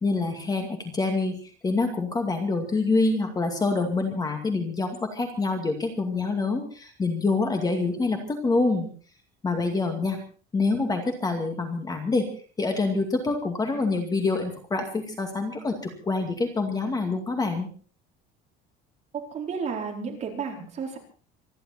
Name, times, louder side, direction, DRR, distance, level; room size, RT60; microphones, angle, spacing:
voice 1, 0.0-8.9 9.4-10.2 10.5-12.2 12.6-17.7, left 3 dB, 20° left, 4 dB, 2.3 m, -26 dB
voice 2, 19.3-21.0, right 5 dB, 30° right, 1 dB, 4.5 m, -32 dB
26.5 x 11.5 x 4.3 m, 0.40 s
cardioid pair, 165°, 21 cm